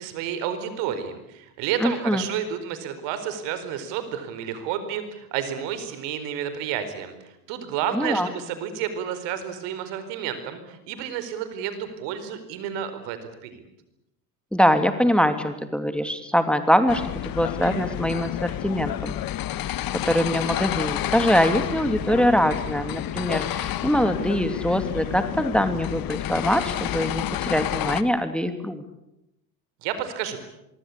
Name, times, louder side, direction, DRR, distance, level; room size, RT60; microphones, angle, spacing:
voice 1, 0.0-13.6 29.8-30.4, right 9 dB, 65° right, 10 dB, 4.6 m, -31 dB
voice 2, 1.8-2.2 7.9-8.3 14.5-19.2 19.9-28.8, equal, ahead, 8 dB, 2.8 m, -23 dB
sound 1, 16.9-28.0, left 12 dB, 45° left, 1.6 m, -30 dB
25.0 x 23.5 x 8.5 m, 0.87 s
hypercardioid pair, 70°, 46 cm